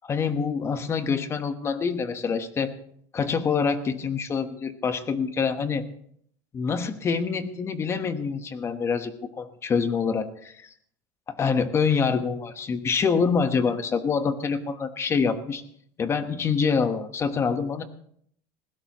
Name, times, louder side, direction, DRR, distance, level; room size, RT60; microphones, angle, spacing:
voice 1, 0.0-2.7 3.1-5.8 6.5-10.7 11.3-15.6 16.0-17.8, left 5 dB, 25° left, 10 dB, 1.2 m, -26 dB
20.0 x 16.5 x 3.0 m, 0.65 s
supercardioid pair, 140°, 11 cm